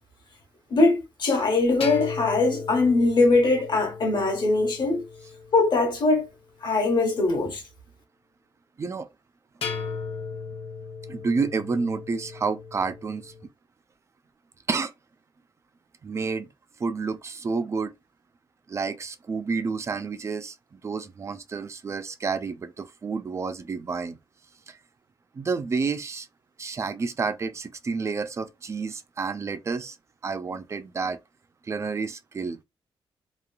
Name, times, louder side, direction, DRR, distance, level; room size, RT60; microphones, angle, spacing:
voice 1, 0.7-5.0 5.5-6.3 6.6-7.6, left 3 dB, 50° left, 1.1 m, -21 dB
sound 1, 1.8-6.1 9.6-13.5, left 5 dB, 70° left, 0.7 m, -36 dB
voice 2, 11.1-13.3 14.7-14.9 16.0-16.5 16.8-17.9 18.7-24.2 24.7-24.8 25.3-26.3 26.6-30.0 30.2-31.2 31.6-32.6, right 4 dB, 30° right, 0.3 m, -30 dB
3.0 x 2.4 x 2.3 m
wide cardioid pair, 155°, 10 cm